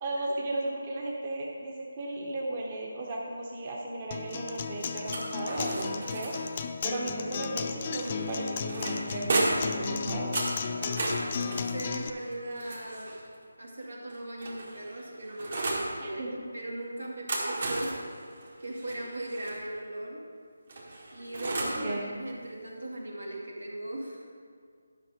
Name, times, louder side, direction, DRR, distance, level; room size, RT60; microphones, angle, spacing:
voice 1, 0.0-6.3 6.8-10.5 16.0-16.4 21.6-22.1, right 2 dB, 30° right, -2 dB, 1.0 m, -35 dB
Acoustic guitar, 4.1-12.1, left 5 dB, 35° left, 0.5 m, -34 dB
sound 1, 5.1-6.6 8.0-9.8 10.3-13.3 14.1-15.9 17.0-19.6 20.7-21.9, right 2 dB, 55° right, 1.9 m, -34 dB
voice 2, 11.4-13.1 13.6-17.9 18.6-20.2 21.1-24.2, right 1 dB, 85° right, -2 dB, 2.3 m, -38 dB
11.5 x 5.8 x 5.0 m, 2.1 s
figure-of-eight pair, 160°, 0 cm